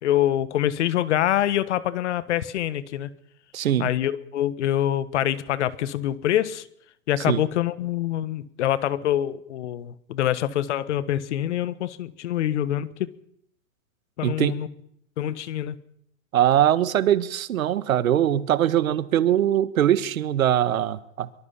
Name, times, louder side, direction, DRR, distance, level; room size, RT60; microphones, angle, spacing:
voice 1, 0.0-3.1 3.8-6.6 7.1-13.1 14.2-14.7 15.2-15.7, left 12 dB, 55° left, 16 dB, 1.5 m, -25 dB
voice 2, 3.5-3.9 7.3-7.4 14.2-14.6 16.3-21.3, right 11 dB, 70° right, 14 dB, 1.7 m, -22 dB
24.0 x 23.5 x 5.7 m, 0.70 s
hypercardioid pair, 155°, 43 cm